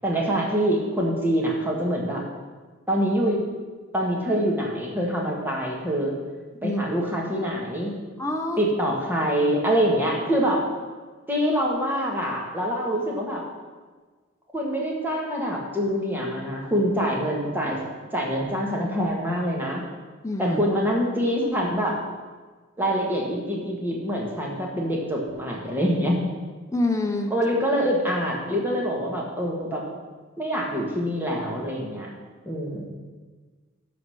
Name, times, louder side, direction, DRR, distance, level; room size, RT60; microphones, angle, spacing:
voice 1, 0.0-2.2 2.9-3.4 3.9-6.1 6.6-7.9 8.6-10.6 11.3-13.4 14.5-17.8 18.1-19.8 20.4-22.0 22.8-26.2 27.3-29.8 30.4-32.1 32.4-32.9, equal, 10° right, -2 dB, 1.8 m, -25 dB
voice 2, 8.2-8.6 20.2-20.6 26.7-27.3, left 2 dB, 15° left, 3 dB, 0.9 m, -26 dB
12.0 x 4.1 x 6.4 m, 1.4 s
head